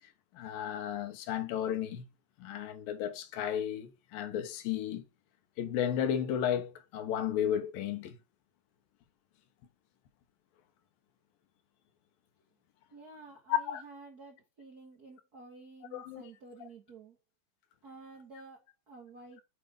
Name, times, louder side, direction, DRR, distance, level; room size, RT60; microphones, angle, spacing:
voice 1, 0.3-2.1 2.4-5.0 5.6-8.2 13.6-13.8 15.9-16.3, left 9 dB, 85° left, 2.7 m, -34 dB
voice 2, 12.9-17.2 17.8-19.4, right 3 dB, 55° right, 1.0 m, -51 dB
7.9 x 5.2 x 5.0 m
omnidirectional pair, 4.1 m